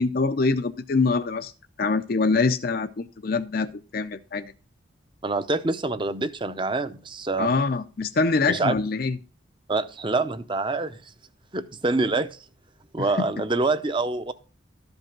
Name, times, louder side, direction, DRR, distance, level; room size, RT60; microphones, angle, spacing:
voice 1, 0.0-1.5 1.8-4.5 7.4-9.2 13.2-13.3, left 4 dB, 50° left, 0.5 m, -24 dB
voice 2, 5.2-7.5 8.5-8.7 9.7-11.0 11.5-12.4 12.9-14.3, right 3 dB, 25° right, 0.7 m, -26 dB
13.0 x 5.3 x 5.9 m
head